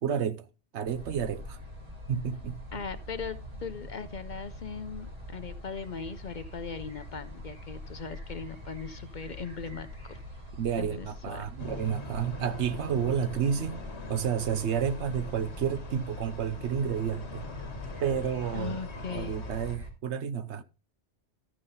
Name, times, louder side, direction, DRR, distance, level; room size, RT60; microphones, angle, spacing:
voice 1, 0.0-0.4 0.7-1.6 2.1-2.8 10.5-13.8 14.1-17.5 18.0-18.8 19.1-20.6, right 8 dB, 80° right, 1.0 m, -31 dB
sound 1, 0.8-19.9, left 1 dB, 40° right, 3.5 m, -43 dB
voice 2, 2.7-10.2 10.8-11.4 18.5-19.4, left 5 dB, 50° left, 0.7 m, -39 dB
sound 2, 11.6-19.8, left 3 dB, 70° left, 1.4 m, -42 dB
13.5 x 5.5 x 4.0 m
omnidirectional pair, 1.2 m